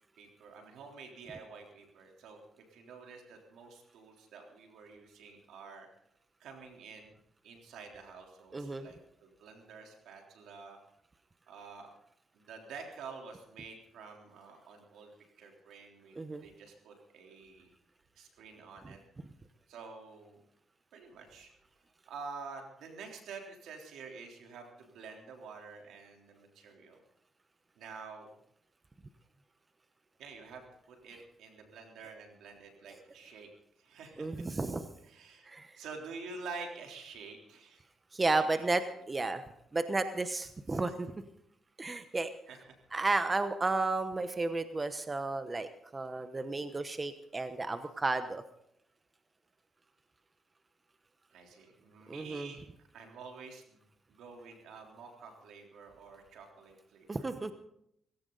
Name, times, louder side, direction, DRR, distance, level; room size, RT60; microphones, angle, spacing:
voice 1, 0.2-5.9 6.4-7.1 7.4-10.8 11.5-11.9 12.3-15.1 15.4-17.7 18.2-19.0 19.7-20.4 20.9-21.5 22.1-27.0 27.8-28.3 30.2-33.5 33.8-34.5 35.0-35.5 35.8-37.8 38.5-39.0 40.7-40.8 42.5-42.8 51.3-52.6 52.9-57.3, right 4 dB, 80° right, 2 dB, 3.5 m, -49 dB
voice 2, 8.5-8.9 16.2-16.4 34.2-34.9 35.5-35.7 38.1-38.8 39.1-39.4 39.7-41.1 41.8-42.3 42.9-48.4 52.1-52.5 57.1-57.5, right 3 dB, 25° right, 10 dB, 1.0 m, -32 dB
18.5 x 16.5 x 4.0 m, 0.74 s
cardioid pair, 85°, 0 cm